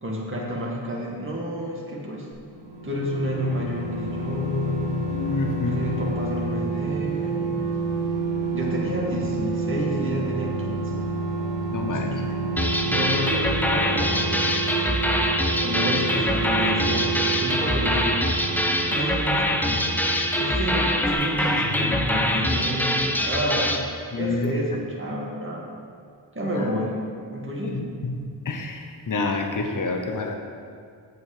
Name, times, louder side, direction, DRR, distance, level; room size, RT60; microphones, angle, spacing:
voice 1, 0.0-2.3 2.8-4.9 5.7-7.6 8.5-11.1 11.9-12.6 12.8-14.8 15.6-17.1 17.4-18.4 18.9-19.9 20.4-23.8 24.1-25.6 26.3-26.9 27.3-27.9, equal, 25° right, -3 dB, 2.1 m, -30 dB
sound 1, 2.3-20.8 21.1-21.2, right 3 dB, 70° right, 1.8 m, -29 dB
voice 2, 5.1-5.8 11.7-12.1 24.1-24.5 26.5-26.7 27.7-28.2 28.4-30.4, left 3 dB, 45° left, 3 dB, 1.1 m, -28 dB
sound 2, 12.6-23.9, left 1 dB, 5° left, 0.9 m, -24 dB
sound 3, 21.4-23.4, left 1 dB, 80° left, 2.0 m, -33 dB
8.3 x 7.9 x 5.1 m, 2.2 s
cardioid pair, 45°, 45 cm